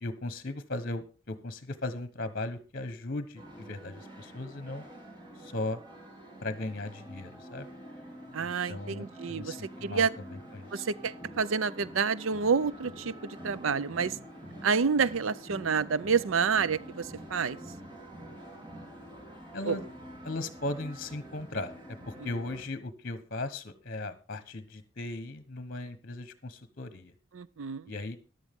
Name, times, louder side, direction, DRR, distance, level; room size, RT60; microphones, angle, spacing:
voice 1, 0.0-4.8 5.3-5.8 6.4-7.7 8.4-10.8 19.5-19.8 20.2-27.1 27.9-28.2, left 2 dB, 50° left, 1.2 m, -37 dB
sound 1, 3.4-22.6, equal, 25° right, 4.0 m, -47 dB
voice 2, 8.3-10.1 10.7-14.2 14.6-17.6 19.7-19.8 22.2-22.3 27.3-27.9, right 5 dB, 85° right, 0.6 m, -29 dB
14.5 x 11.0 x 3.6 m
head